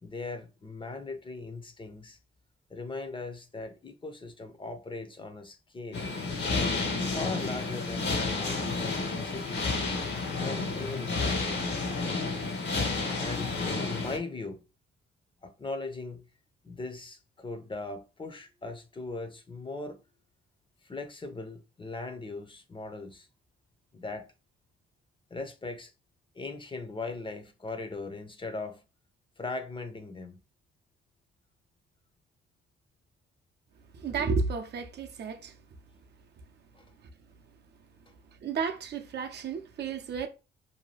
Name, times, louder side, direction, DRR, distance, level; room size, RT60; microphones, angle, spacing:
voice 1, 0.0-2.2 2.7-6.1 7.0-8.8 9.2-9.8 10.4-11.7 13.2-14.6 15.4-16.2 16.6-20.0 20.8-23.3 23.9-24.3 25.3-25.9 26.3-28.8 29.4-30.4 36.7-36.8, left 3 dB, 25° left, 0.6 m, -39 dB
sound 1, 5.9-14.2, left 3 dB, 60° left, 0.9 m, -31 dB
voice 2, 33.9-35.6 37.0-37.1 38.4-40.3, right 5 dB, 55° right, 0.6 m, -32 dB
2.7 x 2.2 x 3.2 m
supercardioid pair, 65°, 21 cm